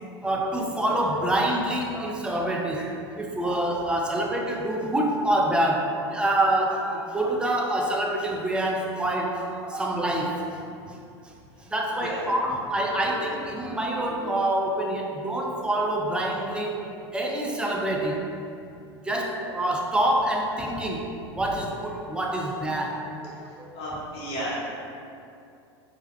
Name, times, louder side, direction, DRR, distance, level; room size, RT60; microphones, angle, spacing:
voice 1, 0.2-10.4 11.6-16.8 17.1-18.2 19.0-21.1 21.3-23.8, right 1 dB, 5° right, -1 dB, 0.4 m, -26 dB
voice 2, 23.4-24.6, equal, 40° left, -7 dB, 1.0 m, -34 dB
3.3 x 2.8 x 2.2 m, 2.6 s
figure-of-eight pair, 85°, 15 cm